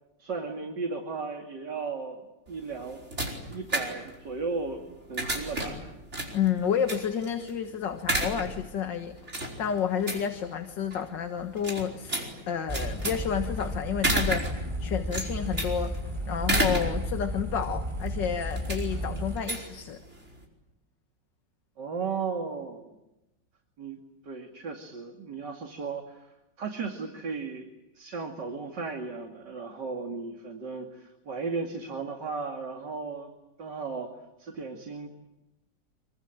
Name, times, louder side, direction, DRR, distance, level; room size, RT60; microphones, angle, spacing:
voice 1, 0.2-2.2 2.5-3.0 3.5-5.9 21.8-22.9 23.8-24.0 24.2-26.2 26.6-27.7 27.9-33.3 33.6-34.1 34.4-35.1, right 4 dB, 70° right, 3 dB, 3.1 m, -35 dB
sound 1, 2.5-20.4, right 1 dB, 40° right, 5.4 m, -33 dB
voice 2, 6.3-16.0 16.3-20.0, left 8 dB, 80° left, 7 dB, 2.1 m, -30 dB
sound 2, 12.7-19.4, equal, 15° right, 3.7 m, -33 dB
26.0 x 24.5 x 9.1 m, 0.94 s
omnidirectional pair, 1.9 m